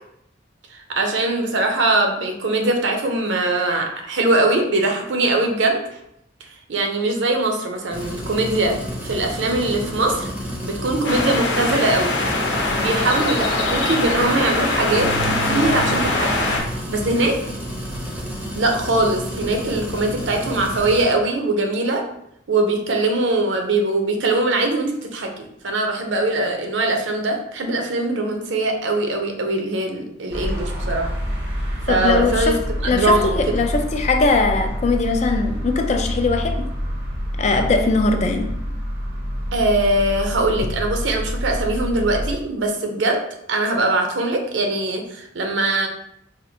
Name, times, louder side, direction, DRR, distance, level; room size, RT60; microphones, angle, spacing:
voice 1, 0.7-6.0 6.7-8.8 9.0-10.3 10.6-12.1 12.6-17.4 18.6-22.0 22.5-31.1 31.9-32.6 32.9-33.6 39.5-43.2 43.5-45.9, right 2 dB, 70° right, 3 dB, 0.6 m, -21 dB
sound 1, 7.9-21.0, equal, 10° right, 0.6 m, -31 dB
Windscape With Foghorn, 11.0-16.6, left 2 dB, 65° left, 0.8 m, -22 dB
sound 2, 30.3-42.3, equal, 90° right, 1.0 m, -27 dB
voice 2, 31.9-32.6 32.8-36.7 37.4-38.5, left 3 dB, 35° left, 5 dB, 0.3 m, -20 dB
4.2 x 2.5 x 2.7 m, 0.76 s
head